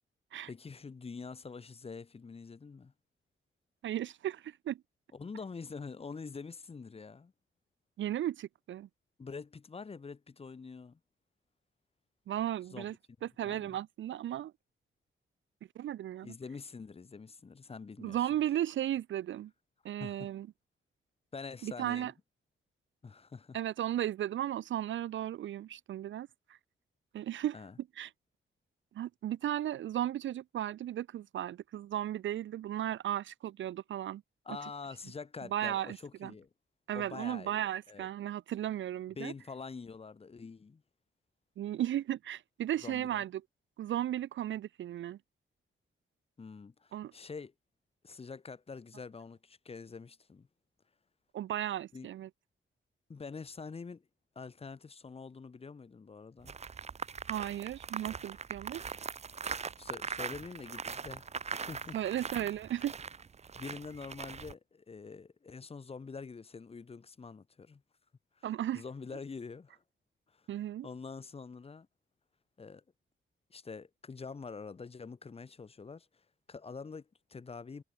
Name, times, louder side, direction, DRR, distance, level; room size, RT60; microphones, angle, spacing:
voice 1, 0.5-2.9 5.1-7.3 9.2-11.0 12.7-12.8 13.4-13.8 16.2-18.2 20.0-20.3 21.3-22.1 23.0-23.6 27.5-27.8 34.4-36.5 36.9-38.1 39.2-40.8 42.8-43.2 46.4-47.5 48.0-50.5 51.9-52.1 53.1-54.1 54.3-56.6 59.8-62.0 62.3-62.6 63.5-67.8 68.4-68.5 68.7-69.8 70.3-70.5 70.8-71.9 72.6-72.8 73.5-77.8, left 4 dB, 30° left, 1.5 m, -46 dB
voice 2, 3.8-4.8 8.0-8.9 12.3-12.9 13.2-14.5 15.8-16.3 18.0-19.5 19.8-20.5 21.6-22.1 23.5-26.6 27.1-27.5 28.0-28.1 28.9-34.2 35.5-36.3 36.9-39.3 41.6-43.4 43.8-45.2 46.9-47.1 51.3-52.3 57.3-58.9 61.9-62.9 68.4-68.8 70.5-70.9, right 12 dB, 65° right, 0.4 m, -35 dB
sound 1, 56.4-64.5, right 5 dB, 30° right, 0.9 m, -41 dB
wide cardioid pair, 175°, 21 cm